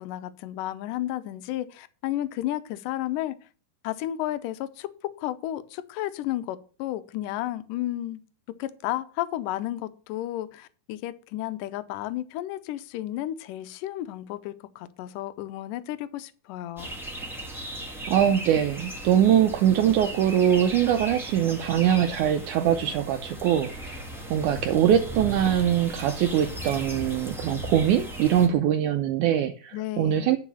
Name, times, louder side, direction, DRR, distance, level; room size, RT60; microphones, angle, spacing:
voice 1, 0.0-3.4 3.8-4.9 5.2-8.2 8.6-17.0 29.7-30.3, left 14 dB, 75° left, 12 dB, 2.2 m, -32 dB
sound 1, 16.8-28.5, equal, ahead, 1.3 m, -37 dB
voice 2, 18.1-24.0 24.3-30.4, right 10 dB, 90° right, 9 dB, 1.7 m, -22 dB
10.0 x 4.9 x 7.1 m, 0.39 s
omnidirectional pair, 4.2 m